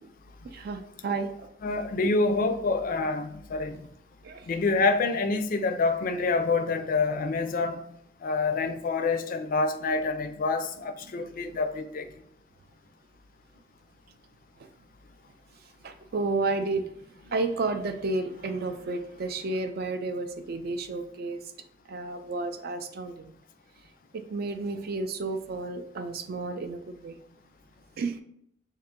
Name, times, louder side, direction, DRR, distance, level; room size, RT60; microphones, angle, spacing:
voice 1, 0.5-1.5 4.2-4.5 15.8-16.8 17.3-21.4 21.9-23.3 24.1-27.1 28.0-28.2, right 3 dB, 55° right, 8 dB, 0.4 m, -31 dB
voice 2, 1.6-3.8 4.5-7.8 8.2-12.0, left 3 dB, 50° left, 9 dB, 0.4 m, -27 dB
3.6 x 2.8 x 3.6 m, 0.71 s
head